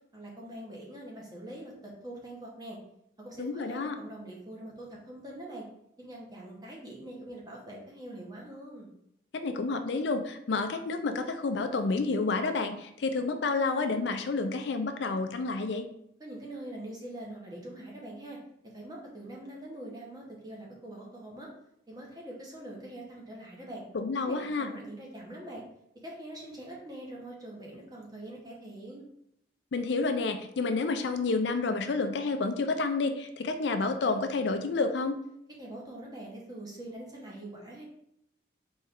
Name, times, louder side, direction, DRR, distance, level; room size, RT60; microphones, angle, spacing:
voice 1, 0.1-2.8 3.2-5.7 6.0-8.9 16.2-18.4 18.7-21.5 21.9-23.8 24.2-25.6 26.0-29.0 35.6-37.8, right 1 dB, 20° right, -2 dB, 1.0 m, -43 dB
voice 2, 3.4-4.0 9.3-15.9 23.9-24.7 29.7-35.2, left 3 dB, 70° left, 8 dB, 0.4 m, -29 dB
4.3 x 3.1 x 3.6 m, 0.75 s
head